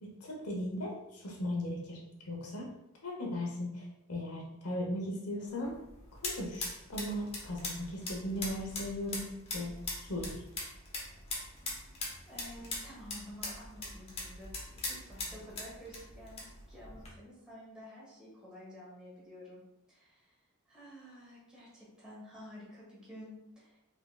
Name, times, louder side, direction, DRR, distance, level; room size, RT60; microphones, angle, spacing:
voice 1, 0.0-2.7 3.0-5.7 6.2-9.7 10.0-10.4, left 1 dB, 75° left, -1 dB, 1.0 m, -37 dB
sound 1, 5.5-17.1, left 2 dB, 30° left, 0.9 m, -42 dB
voice 2, 12.2-19.6 19.9-20.4 20.7-23.8, equal, 5° right, -8 dB, 1.3 m, -51 dB
3.8 x 3.5 x 2.3 m, 0.89 s
head